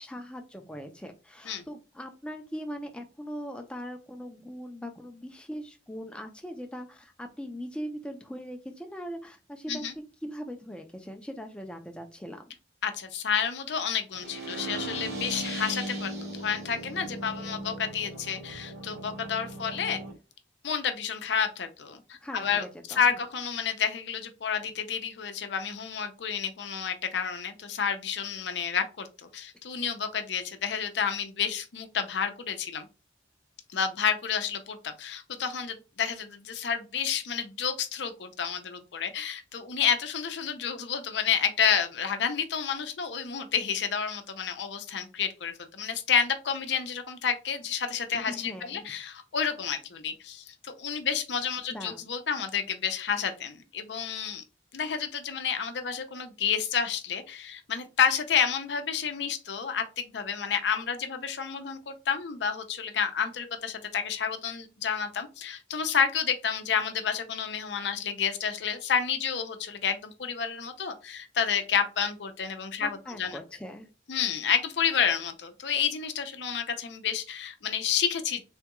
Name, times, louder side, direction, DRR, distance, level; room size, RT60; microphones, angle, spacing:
voice 1, 0.0-9.9 10.2-12.5 22.2-23.2 48.3-48.8 51.7-52.0 72.8-73.9, equal, 5° left, 4 dB, 0.4 m, -40 dB
voice 2, 12.8-20.0 20.6-29.1 29.3-32.9 33.7-54.4 54.7-73.4 74.1-78.4, left 7 dB, 75° left, 7 dB, 0.6 m, -30 dB
sound 1, 14.1-20.1, right 1 dB, 55° right, 1.1 m, -38 dB
3.4 x 2.3 x 2.9 m, 0.31 s
head